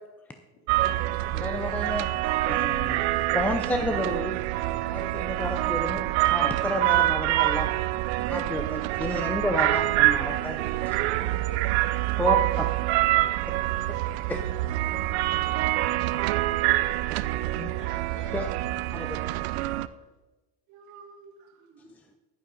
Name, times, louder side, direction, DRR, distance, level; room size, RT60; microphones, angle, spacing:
voice 1, 0.5-1.1 4.2-4.4 10.6-11.1 11.9-12.2 13.0-13.1 15.3-15.5 17.8-18.4, left 2 dB, 70° left, -2 dB, 4.0 m, -51 dB
sound 1, 0.7-19.9, right 16 dB, 90° right, 0.5 m, -26 dB
voice 2, 1.3-2.1 2.5-3.0 3.3-4.4 4.9-7.7 8.3-10.6 12.2-12.4 14.3-14.4 17.6-17.7 18.3-18.5 18.9-19.2, left 1 dB, 5° left, 6 dB, 0.4 m, -30 dB
voice 3, 13.8-14.2 19.9-20.0 20.7-21.9, right 5 dB, 65° right, 3 dB, 2.0 m, -53 dB
11.0 x 9.4 x 4.0 m, 1.1 s
cardioid pair, 135°, 31 cm